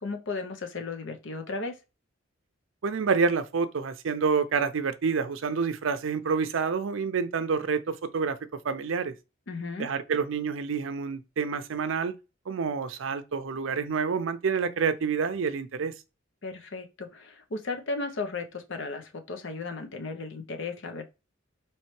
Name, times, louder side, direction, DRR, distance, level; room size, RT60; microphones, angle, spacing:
voice 1, 0.0-1.8 9.5-9.9 16.4-21.0, left 3 dB, 65° left, 0.7 m, -35 dB
voice 2, 2.8-8.4 8.6-9.1 9.8-12.1 12.5-15.9, right 5 dB, 70° right, 0.5 m, -28 dB
4.3 x 3.1 x 3.1 m
head